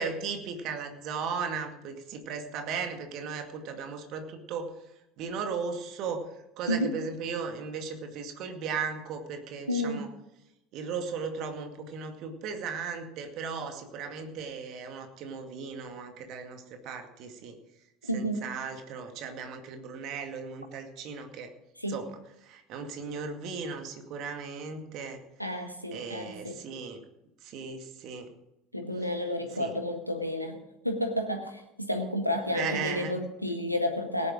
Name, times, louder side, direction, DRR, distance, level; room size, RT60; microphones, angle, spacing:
voice 1, 0.0-4.7 5.2-6.2 6.6-10.1 10.7-17.6 18.1-21.5 21.9-22.1 22.4-25.2 25.9-27.0 27.4-28.3 29.6-29.7 32.5-33.2, right 5 dB, 50° right, 5 dB, 2.2 m, -36 dB
voice 2, 9.7-10.1 18.1-18.4 21.8-22.0 25.4-26.6 28.7-34.3, left 1 dB, 90° left, 4 dB, 1.6 m, -31 dB
18.0 x 10.0 x 5.1 m, 0.88 s
figure-of-eight pair, 65°, 0 cm